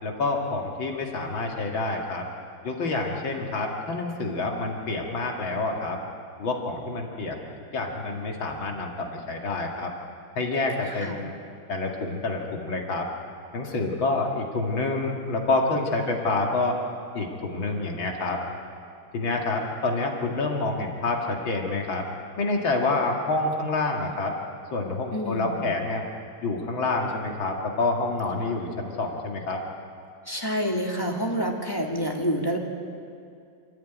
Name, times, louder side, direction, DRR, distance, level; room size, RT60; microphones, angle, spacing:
voice 1, 0.0-2.2 2.6-6.0 6.4-7.4 7.7-9.9 10.4-11.3 11.7-13.1 13.5-16.8 17.1-18.4 19.1-22.0 22.4-24.4 24.7-26.0 26.4-29.6, left 3 dB, 70° left, 1 dB, 2.8 m, -27 dB
voice 2, 10.9-11.2 25.1-25.7 30.3-32.6, equal, 10° left, 0 dB, 2.1 m, -28 dB
28.5 x 13.5 x 9.2 m, 2.4 s
omnidirectional pair, 2.2 m